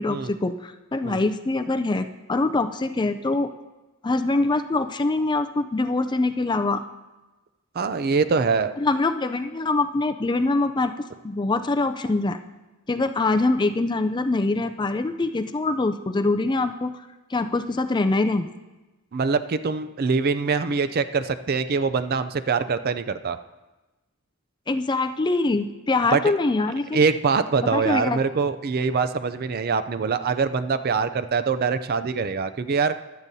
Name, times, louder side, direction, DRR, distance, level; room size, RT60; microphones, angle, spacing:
voice 1, 0.0-3.5 4.0-6.8 8.8-10.9 11.2-12.4 12.9-16.9 17.3-18.5 24.7-27.0 27.7-28.2, left 2 dB, 20° left, 9 dB, 0.4 m, -24 dB
voice 2, 7.7-8.7 19.1-23.4 26.1-26.3 26.9-32.9, right 5 dB, 45° right, 12 dB, 0.4 m, -24 dB
16.0 x 11.5 x 2.7 m, 1.1 s
head